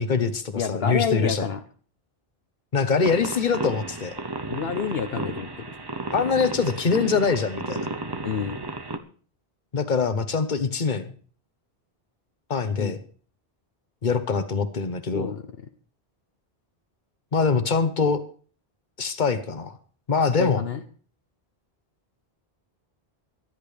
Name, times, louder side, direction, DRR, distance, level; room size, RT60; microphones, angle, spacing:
voice 1, 0.0-1.5 2.7-4.1 6.1-7.9 9.7-11.1 12.5-13.0 14.0-15.3 17.3-18.2 19.0-19.8 20.1-20.6, left 5 dB, 50° left, 10 dB, 1.3 m, -24 dB
voice 2, 0.6-1.6 4.5-5.7 8.2-8.6 12.8-12.9 15.1-15.4 20.3-20.8, left 7 dB, 70° left, 7 dB, 1.1 m, -28 dB
sound 1, 3.0-9.0, right 3 dB, 25° right, 0.8 m, -33 dB
24.0 x 10.5 x 3.4 m, 0.42 s
omnidirectional pair, 1.0 m